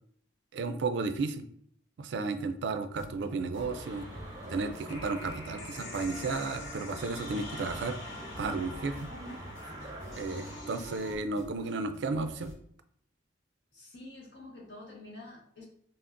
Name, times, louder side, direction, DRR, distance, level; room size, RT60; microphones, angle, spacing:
voice 1, 0.5-1.4 2.0-4.1 4.5-8.0 8.4-9.1 9.8-12.5, right 3 dB, 70° right, 9 dB, 0.4 m, -33 dB
sound 1, 2.9-12.5, equal, 10° left, 1.4 m, -49 dB
sound 2, 3.5-10.6, right 1 dB, 20° right, 0.6 m, -46 dB
sound 3, 3.7-11.1, left 2 dB, 85° left, 1.0 m, -46 dB
voice 2, 9.0-9.6 13.7-15.6, left 1 dB, 65° left, -2 dB, 1.2 m, -48 dB
5.6 x 2.0 x 2.5 m, 0.65 s
head